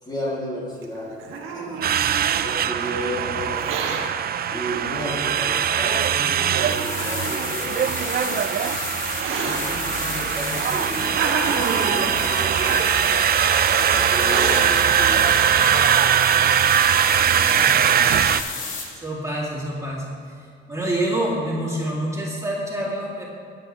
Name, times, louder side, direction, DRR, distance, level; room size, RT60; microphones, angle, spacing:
voice 1, 0.0-1.3 1.5-2.0 2.4-4.0 4.5-8.5 9.3-11.2 11.7-12.9 13.7-15.5, equal, 20° left, -5 dB, 3.0 m, -33 dB
Hiss, 0.8-2.5 3.4-4.0 5.0-5.1 5.9-6.0 6.5-7.5 8.4-9.6 10.4-11.9 12.5-12.9 13.6-13.7 14.2-14.6 15.1-15.2 15.4-16.1, right 5 dB, 90° right, 1.4 m, -29 dB
sound 1, 1.8-18.4, right 9 dB, 50° right, 0.5 m, -21 dB
sound 2, 6.4-18.9, left 4 dB, 80° left, 2.0 m, -32 dB
voice 2, 17.5-18.1 18.7-20.0 20.7-23.2, right 1 dB, 15° right, -5 dB, 3.1 m, -27 dB
20.0 x 8.5 x 3.4 m, 2.3 s
cardioid pair, 90°, 20 cm